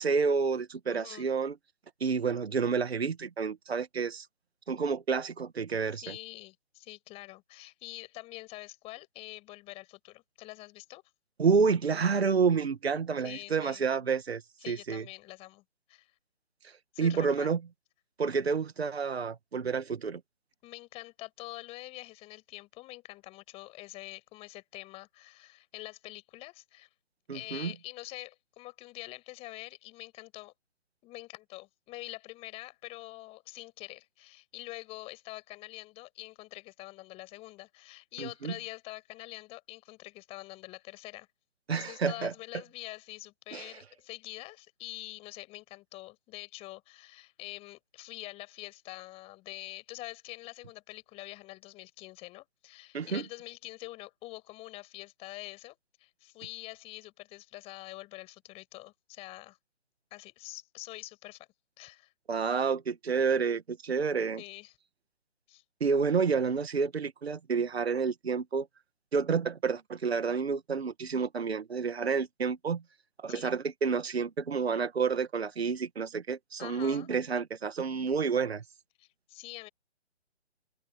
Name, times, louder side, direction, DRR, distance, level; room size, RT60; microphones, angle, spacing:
voice 1, 0.0-1.6 2.0-4.3 4.7-6.2 11.4-15.0 16.6-16.7 17.0-17.6 18.2-20.2 27.3-27.7 38.2-38.5 41.7-42.3 43.5-43.7 52.9-53.2 62.3-64.4 65.8-68.7 69.1-72.8 73.2-78.6, right 5 dB, 60° right, 2.0 m, -29 dB
voice 2, 0.9-1.3 5.9-11.0 13.2-13.8 14.6-15.6 15.9-16.1 16.9-17.6 20.6-26.9 27.3-30.5 31.0-41.3 41.7-59.6 60.1-61.5 61.8-62.1 64.4-64.7 65.5-65.6 73.3-73.5 76.6-77.1 79.0-79.7, left 19 dB, 15° left, 7.6 m, -45 dB
open air
figure-of-eight pair, 145°, 35 cm